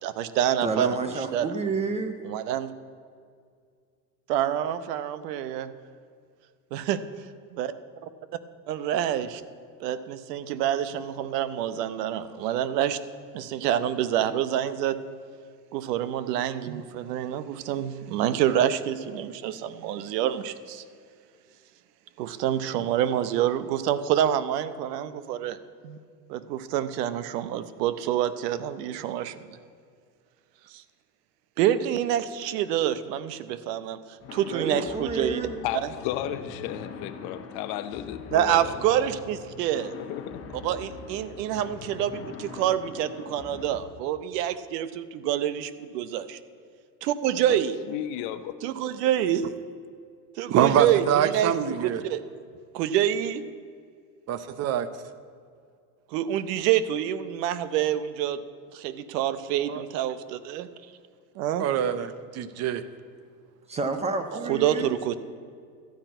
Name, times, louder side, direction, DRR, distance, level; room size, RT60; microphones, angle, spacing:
voice 1, 0.0-1.5 2.2-2.7 4.3-5.7 6.7-7.0 7.5-7.7 8.7-9.4 9.8-13.0 13.3-15.0 15.7-20.8 22.2-25.6 25.8-26.0 26.3-29.6 30.7-30.8 31.6-34.0 34.3-35.4 38.3-39.9 40.6-46.4 47.0-47.7 48.6-49.5 50.4-52.2 52.7-53.4 56.1-58.4 58.7-60.7 61.4-61.7 64.4-65.2, right 11 dB, 70° right, 14 dB, 0.9 m, -27 dB
voice 2, 0.6-2.2 34.5-35.6 63.7-64.9, right 4 dB, 15° right, 8 dB, 0.3 m, -29 dB
sound 1, 34.2-43.8, left 4 dB, 30° left, 1.3 m, -42 dB
voice 3, 35.6-38.7 39.0-39.1 39.9-40.4 47.5-47.6 47.9-48.5, left 12 dB, 50° left, 9 dB, 0.8 m, -33 dB
voice 4, 50.5-52.0 54.3-54.9 59.7-59.8 61.6-62.8, right 9 dB, 30° right, 13 dB, 0.7 m, -25 dB
13.0 x 5.9 x 9.1 m, 2.1 s
supercardioid pair, 120°, 50 cm